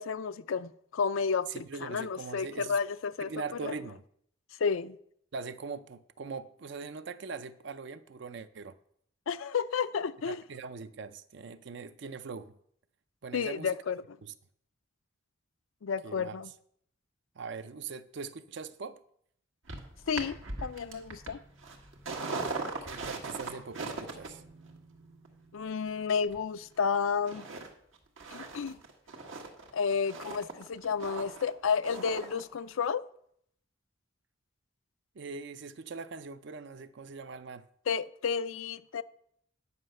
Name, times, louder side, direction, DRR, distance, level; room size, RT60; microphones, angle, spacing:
voice 1, 0.0-3.3 3.6-3.7 4.6-5.0 9.3-10.4 13.3-14.0 15.8-16.5 20.1-21.4 25.5-27.4 28.3-28.8 29.7-33.0 37.9-39.0, left 6 dB, 90° left, 0.5 m, -31 dB
voice 2, 1.5-2.8 3.2-4.0 5.3-8.8 10.3-12.6 13.2-13.8 14.2-14.3 16.0-16.4 17.3-19.0 22.8-24.4 35.1-37.7, right 4 dB, 60° right, 0.5 m, -41 dB
sound 1, 19.7-26.9 27.3-27.7 27.9-32.4 32.7-32.8, right 3 dB, 80° right, 1.6 m, -40 dB
9.6 x 5.7 x 6.5 m
head